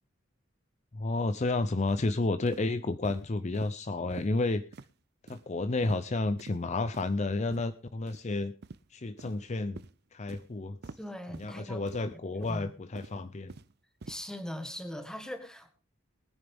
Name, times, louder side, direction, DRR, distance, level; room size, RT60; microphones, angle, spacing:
voice 1, 0.9-4.6 5.3-8.5 8.9-9.8 10.1-10.8 11.4-13.5, left 2 dB, 35° left, 11 dB, 0.5 m, -31 dB
sound 1, 1.9-2.1 2.5-2.6 3.0-3.2 3.5-3.7 4.1-4.3 4.7-4.9 5.3-5.4 5.8-6.1 6.4-6.5 6.9-7.1 7.5-7.6 8.1-8.2 8.6-8.8 9.2-9.4 9.8-9.9 10.3-10.4 10.8-11.0 11.3-11.5 11.9-12.1 12.4-12.6 13.0-13.7 14.0-14.2, right 3 dB, 55° right, 0.6 m, -46 dB
voice 2, 11.0-11.8 12.4-12.7 14.1-15.7, left 1 dB, 5° left, 8 dB, 1.5 m, -40 dB
20.0 x 9.8 x 3.5 m, 0.33 s
head